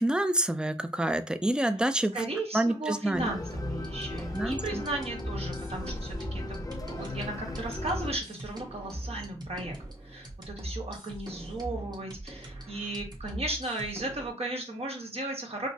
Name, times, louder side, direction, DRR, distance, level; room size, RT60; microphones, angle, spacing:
voice 1, 0.0-2.1 2.5-3.3 4.3-4.8, right 1 dB, 5° right, 9 dB, 0.5 m, -27 dB
voice 2, 2.1-9.8 10.0-15.7, right 2 dB, 60° right, 0 dB, 1.3 m, -35 dB
sound 1, 3.1-8.2, left 2 dB, 30° left, 0.7 m, -37 dB
sound 2, 3.5-14.3, right 1 dB, 35° right, 1.3 m, -41 dB
5.1 x 2.1 x 2.7 m, 0.32 s
wide cardioid pair, 45°, 12 cm